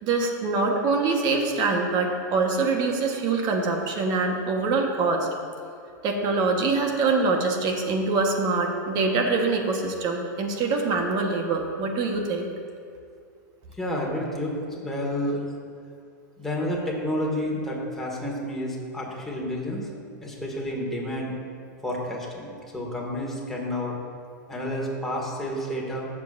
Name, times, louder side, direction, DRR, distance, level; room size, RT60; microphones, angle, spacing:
voice 1, 0.0-5.3 6.0-12.5, right 3 dB, 40° right, 2 dB, 1.4 m, -24 dB
voice 2, 13.8-15.4 16.4-19.9 20.2-21.3 21.8-24.0 24.5-26.1, left 1 dB, 5° left, -4 dB, 2.1 m, -30 dB
15.5 x 7.3 x 2.7 m, 2.3 s
hypercardioid pair, 130°, 10 cm